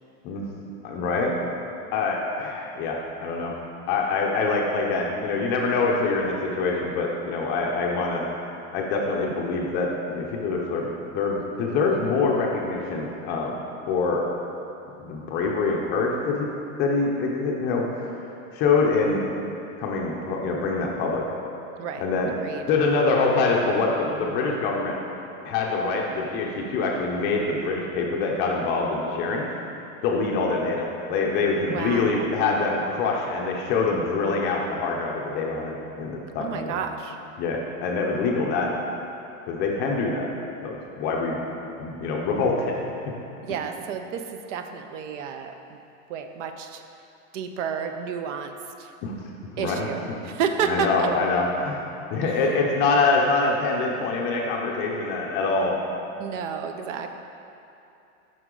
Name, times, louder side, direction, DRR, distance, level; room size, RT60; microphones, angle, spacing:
voice 1, 0.8-1.3 1.9-3.6 3.9-8.3 8.7-13.6 13.9-14.2 15.0-16.5 16.8-17.9 18.5-19.2 19.8-21.2 22.0-22.3 22.7-25.0 25.4-29.5 30.0-36.8 37.4-38.7 39.5-40.3 40.6-41.4 41.8-42.8 49.0-49.1 49.6-49.9 50.6-51.8 52.1-55.8, left 3 dB, 25° left, -1 dB, 0.5 m, -25 dB
voice 2, 31.7-32.2 36.4-37.2 43.4-45.5 46.1-46.8 47.3-48.5 48.8-48.9 49.6-51.1 52.2-52.4 56.2-57.1, right 7 dB, 55° right, 6 dB, 0.6 m, -30 dB
7.9 x 5.5 x 3.8 m, 2.8 s
supercardioid pair, 150°, 43 cm